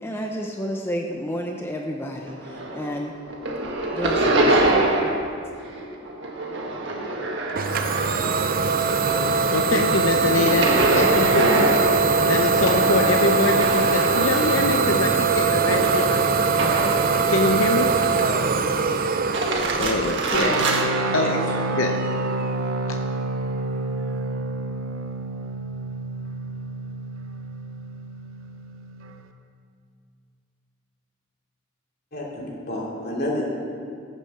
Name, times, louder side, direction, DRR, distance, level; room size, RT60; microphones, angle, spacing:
voice 1, 0.0-3.1 3.9-4.6, equal, 10° left, 0 dB, 0.7 m, -30 dB
sound 1, 2.3-3.0 3.3-5.3 5.6-8.4 8.8-17.1 17.6-18.3 19.1-20.8, right 2 dB, 60° right, 1.7 m, -25 dB
Idling / Domestic sounds home sounds, 7.6-23.1, right 4 dB, 45° right, 0.6 m, -22 dB
voice 2, 9.5-16.2 16.8-16.9 17.3-17.9 19.8-20.4 21.1-21.4 21.7-22.0 22.9-23.0, left 3 dB, 75° left, 4 dB, 0.7 m, -24 dB
voice 3, 20.2-20.6 21.1-21.3 32.1-33.5, left 1 dB, 50° left, -3 dB, 3.1 m, -28 dB
sound 2, 20.3-29.2, right 2 dB, 90° right, 0.8 m, -29 dB
14.0 x 8.4 x 6.7 m, 2.3 s
head